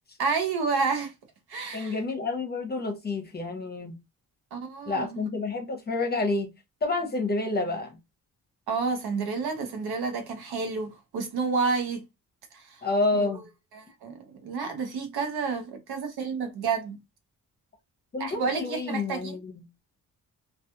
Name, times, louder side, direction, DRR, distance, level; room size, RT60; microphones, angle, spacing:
voice 1, 0.2-1.1 1.5-2.0 4.5-5.2 8.7-12.0 12.5-12.8 13.1-13.3 13.7-17.0 18.2-19.4, right 4 dB, 80° right, 0.8 m, -30 dB
voice 2, 1.7-3.9 4.9-6.5 6.8-8.0 12.8-13.5 18.1-19.6, left 3 dB, 25° left, 0.6 m, -29 dB
2.3 x 2.3 x 2.7 m
wide cardioid pair, 150°, 38 cm